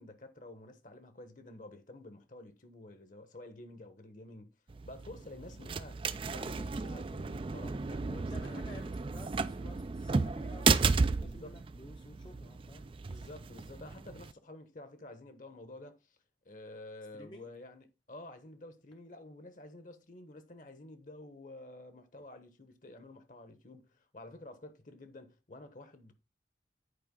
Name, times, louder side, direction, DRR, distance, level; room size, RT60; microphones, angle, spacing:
voice 1, 0.0-4.5 4.8-8.6 11.2-11.6 13.0-16.2 16.4-26.1, left 2 dB, 45° left, 1.2 m, -50 dB
sound 1, 4.7-14.3, right 4 dB, 30° right, 0.3 m, -33 dB
voice 2, 8.0-12.9 17.1-17.5 22.2-22.3, left 1 dB, 25° left, 0.7 m, -53 dB
10.0 x 4.8 x 3.8 m
head